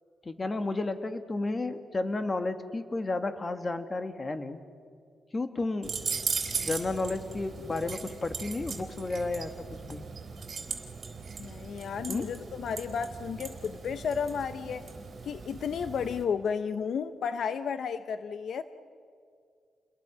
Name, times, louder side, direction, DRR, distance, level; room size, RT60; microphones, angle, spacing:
voice 1, 0.3-4.6 5.3-6.0 6.6-10.1 12.1-12.3, left 2 dB, 30° left, 9 dB, 1.7 m, -32 dB
sound 1, 5.8-16.2, right 5 dB, 45° right, 4.0 m, -38 dB
voice 2, 11.4-14.9 15.2-18.6, left 6 dB, 65° left, 11 dB, 0.8 m, -33 dB
29.5 x 22.0 x 6.2 m, 2.3 s
cardioid pair, 105°, 0 cm